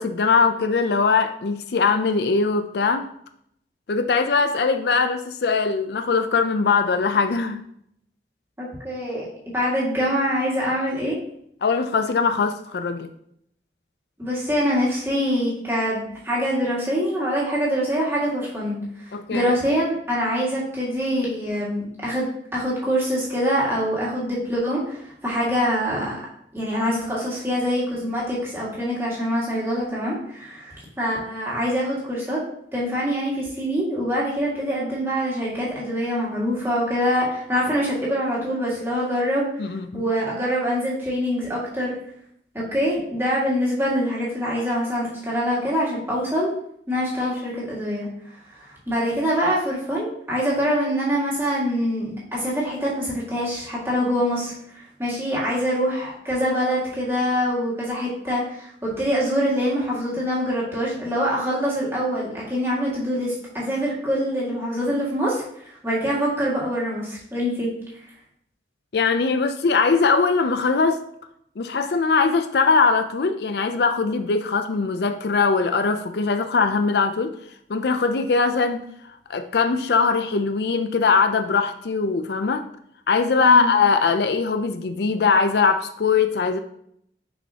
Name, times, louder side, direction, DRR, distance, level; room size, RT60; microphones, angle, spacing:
voice 1, 0.0-3.1 3.9-7.6 11.6-13.1 19.1-19.4 39.6-40.1 68.9-71.0 71.6-77.4 77.7-78.8 79.0-82.6 83.1-86.6, left 4 dB, 65° left, 8 dB, 0.4 m, -21 dB
voice 2, 8.6-11.2 14.2-26.2 26.5-32.4 32.7-42.0 42.5-46.5 46.9-67.7 83.4-83.7, equal, 15° right, -6 dB, 2.0 m, -25 dB
6.4 x 5.3 x 2.8 m, 0.70 s
head